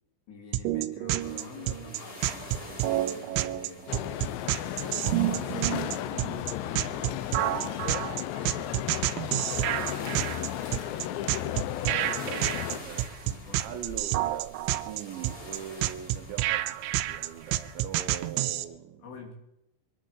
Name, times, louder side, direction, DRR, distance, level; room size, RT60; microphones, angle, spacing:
voice 1, 0.3-4.1 4.5-6.2 6.4-7.6 9.6-12.1 13.2-14.1 19.0-19.3, left 5 dB, 60° left, 4.7 m, -47 dB
sound 1, 0.5-18.7, right 15 dB, 90° right, 3.4 m, -29 dB
sound 2, 1.2-18.6, left 1 dB, 20° left, 3.2 m, -47 dB
sound 3, 3.9-12.8, left 13 dB, 80° left, 2.6 m, -34 dB
voice 2, 10.0-10.3 12.0-19.2, right 9 dB, 70° right, 3.3 m, -42 dB
24.0 x 9.2 x 6.4 m
omnidirectional pair, 5.8 m